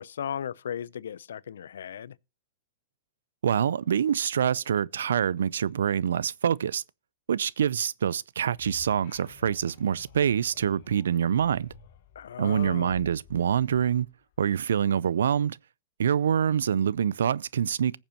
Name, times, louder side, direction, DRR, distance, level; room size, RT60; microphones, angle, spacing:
voice 1, 0.0-2.2 12.1-12.9, left 8 dB, 80° left, 0.5 m, -36 dB
voice 2, 3.4-6.8 7.3-11.7 12.4-14.1 14.4-15.6 16.0-18.0, right 8 dB, 80° right, 0.5 m, -25 dB
sound 1, 8.5-14.7, left 9 dB, 60° left, 1.6 m, -52 dB
20.5 x 7.2 x 2.9 m
hypercardioid pair, 115°, 0 cm